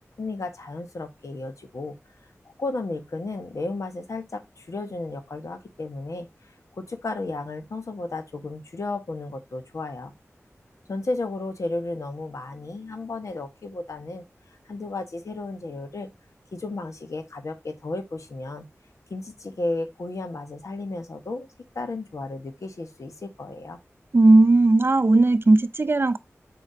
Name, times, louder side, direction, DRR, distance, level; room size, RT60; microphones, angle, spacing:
voice 1, 0.2-2.0 2.6-6.3 6.8-10.1 10.9-14.2 14.7-16.1 16.5-18.7 19.1-21.5 21.7-23.8, left 2 dB, 80° left, 1.4 m, -33 dB
voice 2, 24.1-26.2, right 2 dB, 45° right, 0.6 m, -17 dB
7.8 x 5.1 x 2.8 m
wide cardioid pair, 50°, 5 cm